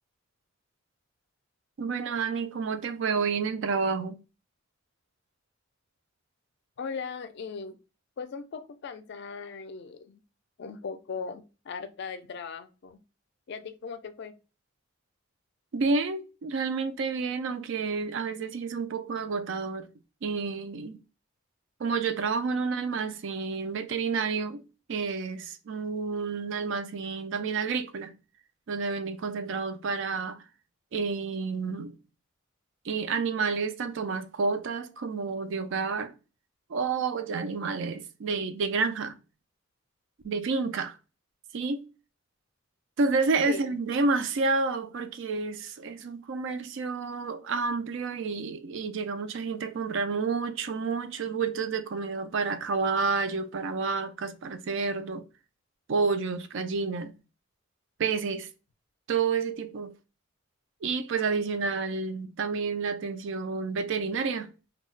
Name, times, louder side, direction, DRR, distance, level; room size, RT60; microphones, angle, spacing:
voice 1, 1.8-4.2 15.7-19.9 20.2-21.0 21.8-24.6 24.9-28.1 28.7-30.4 30.9-32.0 32.8-36.1 36.7-39.2 40.2-41.0 41.5-41.9 43.0-55.2 55.9-57.1 58.0-58.5 59.1-59.9 60.8-64.5, right 4 dB, 65° right, 0.4 m, -29 dB
voice 2, 6.8-7.8 8.2-10.2 10.6-13.0 13.5-14.4 43.5-43.8, left 5 dB, 55° left, 0.4 m, -38 dB
2.2 x 2.1 x 3.8 m
head